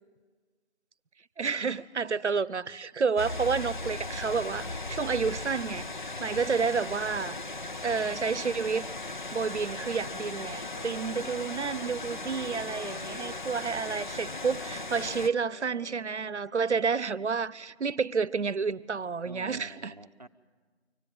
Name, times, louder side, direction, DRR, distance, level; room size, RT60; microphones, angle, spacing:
voice 1, 1.4-7.4 7.8-19.9, right 5 dB, 85° right, 0.8 m, -30 dB
sound 1, 3.2-15.3, left 2 dB, 45° left, 0.7 m, -37 dB
Wind instrument woodwind instrument, 9.9-16.7, left 3 dB, 20° left, 1.2 m, -50 dB
voice 2, 11.1-11.5 19.3-20.3, right 1 dB, 35° right, 0.6 m, -49 dB
25.0 x 17.5 x 9.1 m
figure-of-eight pair, 170°, 34 cm